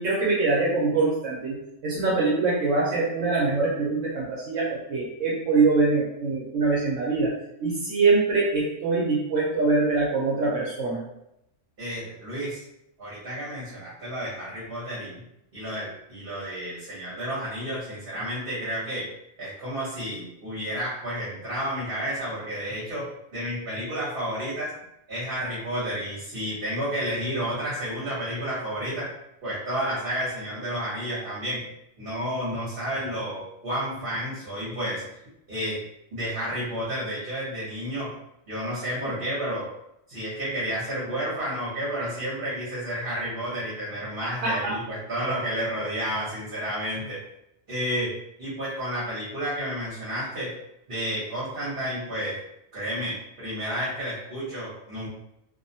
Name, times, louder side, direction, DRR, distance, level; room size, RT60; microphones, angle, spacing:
voice 1, 0.0-7.3 7.6-11.0 44.4-44.7, right 3 dB, 75° right, -5 dB, 1.0 m, -24 dB
voice 2, 11.8-12.6 13.0-15.2 15.5-19.1 19.4-24.7 25.1-29.1 29.4-31.7 32.0-35.0 35.5-35.8 36.1-38.1 38.5-39.7 40.1-47.2 47.7-50.5 50.9-52.4 52.7-55.1, equal, 45° right, -9 dB, 1.0 m, -31 dB
2.5 x 2.1 x 2.6 m, 0.82 s
omnidirectional pair, 1.4 m